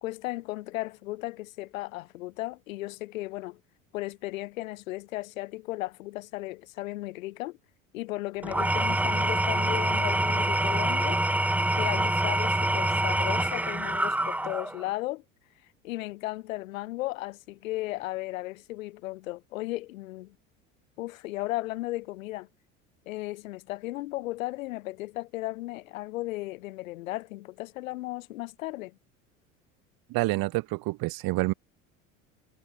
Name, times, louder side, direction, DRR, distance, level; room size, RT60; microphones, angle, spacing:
voice 1, 0.0-3.6 3.9-7.6 7.9-11.2 11.8-15.2 15.8-20.3 21.0-22.5 23.1-29.0, left 18 dB, 75° left, 2.1 m, -35 dB
Engine / Tools, 8.4-14.9, right 1 dB, 5° right, 0.6 m, -26 dB
voice 2, 30.1-31.5, right 21 dB, 60° right, 4.2 m, -28 dB
hypercardioid pair, 75°, 40 cm